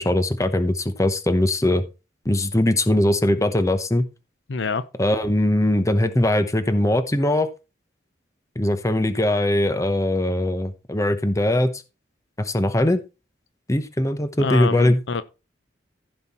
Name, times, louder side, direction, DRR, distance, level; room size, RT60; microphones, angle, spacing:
voice 1, 0.0-1.8 2.2-4.1 5.0-7.5 8.6-11.7 12.4-13.0 13.7-15.0, left 1 dB, 15° left, 0.9 m, -21 dB
voice 2, 4.5-4.8 14.4-15.2, left 4 dB, 80° left, 0.7 m, -26 dB
15.0 x 5.6 x 4.3 m
head